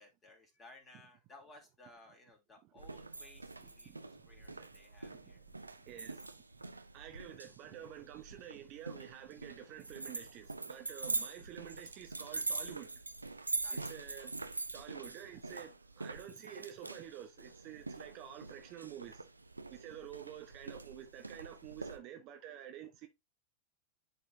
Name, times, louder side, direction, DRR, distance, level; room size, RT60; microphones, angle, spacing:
voice 1, 0.0-3.9 4.3-5.4 11.0-11.3 13.6-14.0, left 2 dB, 20° left, 3.1 m, -59 dB
sound 1, 2.8-22.0, right 3 dB, 80° right, 0.6 m, -44 dB
voice 2, 3.8-4.6 5.0-5.4 5.8-6.3 6.9-13.0 13.7-14.3 14.7-19.3 19.7-23.1, right 11 dB, 40° right, 1.1 m, -50 dB
10.5 x 4.3 x 2.7 m
figure-of-eight pair, 90°, 0 cm